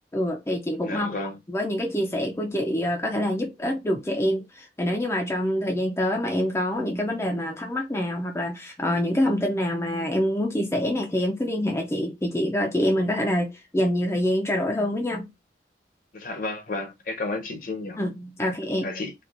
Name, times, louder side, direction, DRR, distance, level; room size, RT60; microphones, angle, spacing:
voice 1, 0.1-1.2 1.5-15.3 18.0-18.9, left 1 dB, 15° left, 0.4 m, -26 dB
voice 2, 0.8-1.4 16.1-18.0 18.4-18.5 18.8-19.1, left 2 dB, 45° left, 0.7 m, -32 dB
4.2 x 2.2 x 2.5 m
head